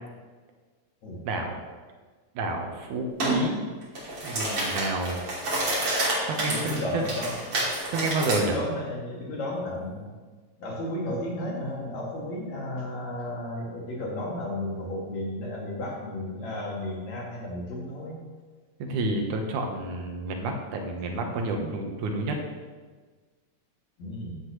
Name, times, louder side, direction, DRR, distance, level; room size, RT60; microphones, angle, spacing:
voice 1, 1.2-1.6 2.3-3.6 4.2-5.3 6.3-7.0 7.9-8.6 18.8-22.4, right 2 dB, 85° right, 3 dB, 2.8 m, -29 dB
sound 1, 3.2-3.4 3.8-8.4, right 1 dB, 50° right, 3.9 m, -29 dB
voice 2, 6.4-7.4 8.4-10.1 10.6-18.2 24.0-24.4, left 1 dB, 70° left, -3 dB, 3.7 m, -33 dB
15.0 x 9.7 x 3.2 m, 1.4 s
omnidirectional pair, 3.4 m